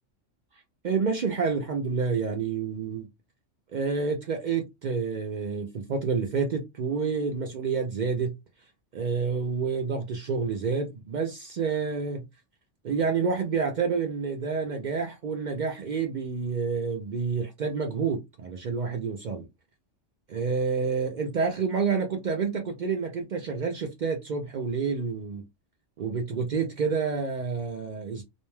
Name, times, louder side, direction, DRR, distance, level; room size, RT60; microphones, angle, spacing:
voice 1, 0.8-3.1 3.7-8.3 8.9-12.2 12.8-19.5 20.3-25.5 26.0-28.2, right 5 dB, 65° right, 0.4 m, -28 dB
2.5 x 2.1 x 3.1 m
omnidirectional pair, 1.3 m